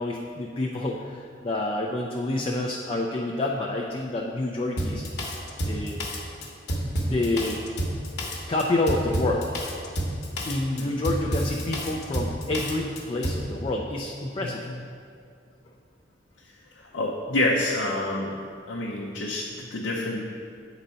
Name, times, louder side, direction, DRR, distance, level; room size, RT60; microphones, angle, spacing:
voice 1, 0.0-5.0 5.6-6.0 6.8-7.6 8.5-9.5 10.4-14.6, left 2 dB, 30° left, -1 dB, 0.5 m, -28 dB
Drum kit, 4.8-13.5, equal, 60° left, 1.1 m, -29 dB
voice 2, 16.9-18.4 18.7-20.2, left 1 dB, 80° left, -4 dB, 0.7 m, -27 dB
8.4 x 4.0 x 5.5 m, 2.3 s
head